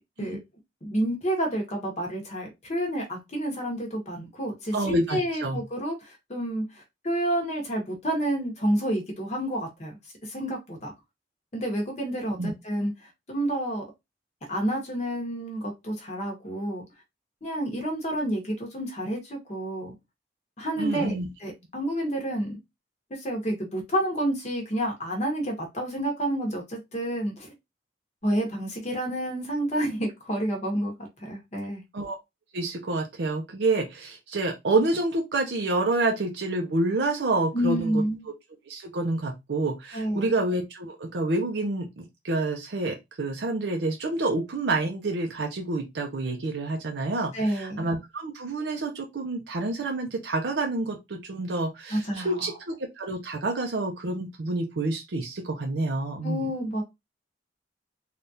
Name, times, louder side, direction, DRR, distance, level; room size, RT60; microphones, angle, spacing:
voice 1, 0.8-9.9 10.2-10.9 11.5-12.9 13.3-13.8 14.5-16.8 17.4-19.9 20.6-22.6 23.1-27.5 28.2-30.9 31.2-31.8 37.5-38.3 39.9-40.3 47.3-47.9 51.9-52.5 56.2-56.8, right 1 dB, 40° left, 2 dB, 0.9 m, -29 dB
voice 2, 4.7-5.6 12.4-12.5 20.8-21.3 31.9-32.2 32.5-37.9 38.7-56.5, right 2 dB, 80° right, 2 dB, 0.6 m, -28 dB
3.4 x 2.3 x 2.7 m, 0.21 s
head